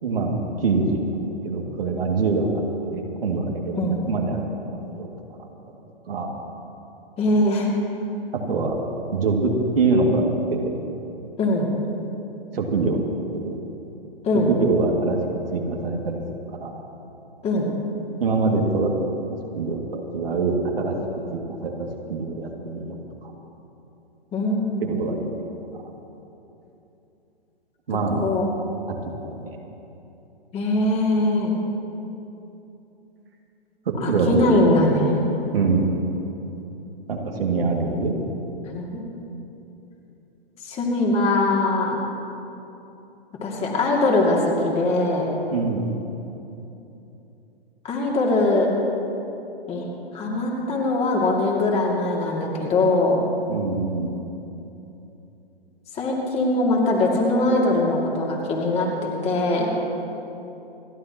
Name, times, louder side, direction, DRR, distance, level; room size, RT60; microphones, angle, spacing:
voice 1, 0.0-2.6 2.9-4.5 4.9-5.1 5.4-5.5 6.1-6.3 8.3-8.7 9.1-10.2 10.5-10.7 12.5-13.6 14.5-15.2 15.5-16.2 16.6-16.8 18.2-18.9 19.6-20.9 21.3-21.7 22.1-23.3 24.8-25.5 27.9-28.2 28.9-29.6 33.9-34.6 35.5-35.9 37.1-38.1 45.5-45.9 53.5-54.1, right 3 dB, 70° right, 0 dB, 2.3 m, -24 dB
voice 2, 7.2-7.7 11.4-11.7 14.2-14.5 17.4-17.7 24.3-24.9 28.1-28.4 30.5-31.5 34.0-35.3 38.7-39.0 40.6-42.0 43.4-45.3 47.8-48.7 49.7-49.9 50.1-53.2 55.9-59.7, left 2 dB, 20° left, -2 dB, 2.6 m, -21 dB
28.5 x 11.5 x 3.0 m, 2.9 s
figure-of-eight pair, 125°, 31 cm